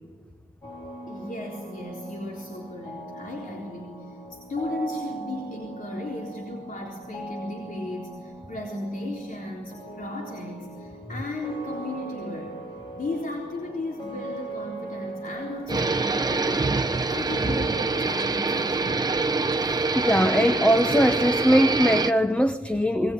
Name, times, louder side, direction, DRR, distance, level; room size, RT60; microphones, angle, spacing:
sound 1, 0.6-18.0, right 2 dB, 35° left, 5.5 m, -40 dB
voice 1, 1.1-12.6 12.9-19.2, left 2 dB, 65° left, -1 dB, 3.8 m, -35 dB
sound 2, 15.7-22.1, right 3 dB, 25° right, 0.8 m, -25 dB
voice 2, 19.9-23.1, equal, 10° left, 9 dB, 0.8 m, -21 dB
26.0 x 20.0 x 9.6 m, 1.4 s
wide cardioid pair, 130°, 15 cm